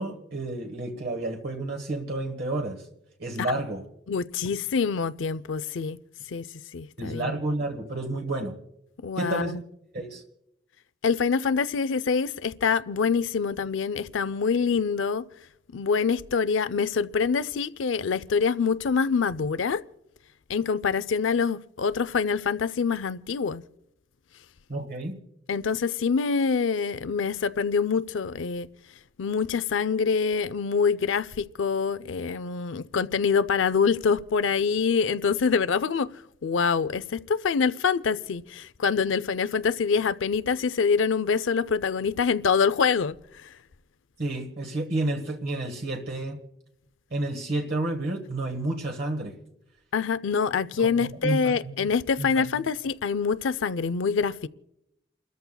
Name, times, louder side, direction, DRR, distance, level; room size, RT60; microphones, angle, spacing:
voice 1, 0.0-2.9 3.2-3.8 7.0-8.6 9.2-9.6 9.9-10.2 24.7-25.2 44.2-46.4 47.1-49.3 50.8-51.9 52.2-52.5, right 2 dB, 55° right, 1.3 m, -30 dB
voice 2, 4.1-6.0 6.3-6.5 6.7-7.4 9.0-9.6 11.0-15.2 15.7-19.8 20.5-23.6 25.5-28.7 29.2-36.1 36.4-43.1 43.4-43.5 49.9-54.5, left 5 dB, 85° left, 0.5 m, -25 dB
29.5 x 13.5 x 2.3 m
head